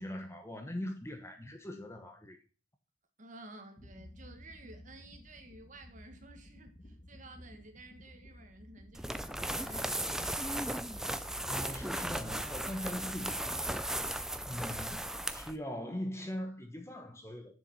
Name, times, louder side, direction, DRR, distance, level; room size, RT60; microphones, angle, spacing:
voice 1, 0.0-2.4 11.5-13.9 14.5-17.5, left 1 dB, 15° left, 1.0 m, -41 dB
voice 2, 3.2-10.6 11.5-11.7, right 2 dB, 40° right, 1.5 m, -53 dB
sound 1, 3.8-15.0, left 1 dB, 35° left, 1.6 m, -54 dB
sound 2, 8.9-15.6, right 1 dB, ahead, 0.4 m, -36 dB
7.0 x 7.0 x 6.1 m
head